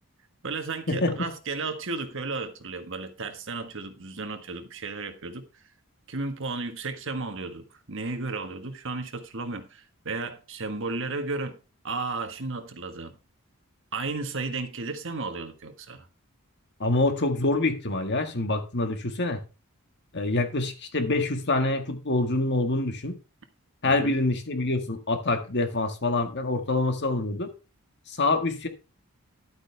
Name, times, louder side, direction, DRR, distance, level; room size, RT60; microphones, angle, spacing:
voice 1, 0.4-5.5 6.1-11.6 11.8-13.2 13.9-16.1 23.8-24.2, right 3 dB, 60° right, 1.5 m, -34 dB
voice 2, 16.8-19.4 20.1-23.2 23.8-27.5 28.1-28.7, left 2 dB, 50° left, 1.8 m, -26 dB
11.5 x 8.9 x 3.4 m
head